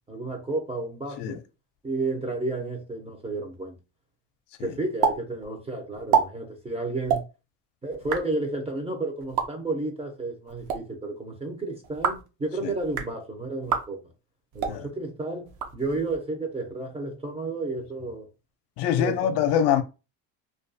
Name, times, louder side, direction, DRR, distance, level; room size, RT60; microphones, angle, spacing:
voice 1, 0.1-1.4 1.8-3.8 4.6-7.2 7.8-14.0 14.5-18.3 19.0-19.4, right 2 dB, 15° right, 0.5 m, -32 dB
sound 1, 5.0-5.2 5.4-5.5 5.9-6.2 7.0-7.2 7.9-8.2 9.2-9.5 10.5-10.8 11.8-12.3 12.8-13.1 13.6-13.8 14.5-14.8 15.5-16.2, right 6 dB, 55° right, 0.7 m, -26 dB
voice 2, 18.8-19.8, left 9 dB, 65° left, 0.5 m, -24 dB
2.3 x 2.3 x 2.6 m
cardioid pair, 120°, 44 cm